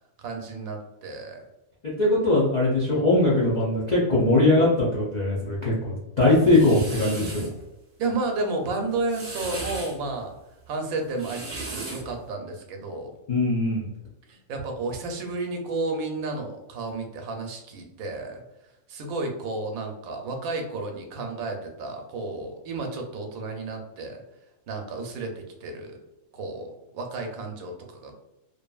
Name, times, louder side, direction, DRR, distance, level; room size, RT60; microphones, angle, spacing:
voice 1, 0.2-1.4 2.9-3.1 8.0-10.3 10.7-13.1 14.3-18.4 18.9-24.2 24.7-26.0 26.3-28.1, right 3 dB, 85° right, 3 dB, 1.0 m, -32 dB
voice 2, 2.0-7.5 13.3-13.9, left 2 dB, 55° left, -7 dB, 0.4 m, -21 dB
sound 1, 6.2-7.5 8.9-10.0 11.0-12.1, right 2 dB, 45° right, 0.8 m, -36 dB
2.6 x 2.5 x 2.3 m, 0.97 s
omnidirectional pair, 1.5 m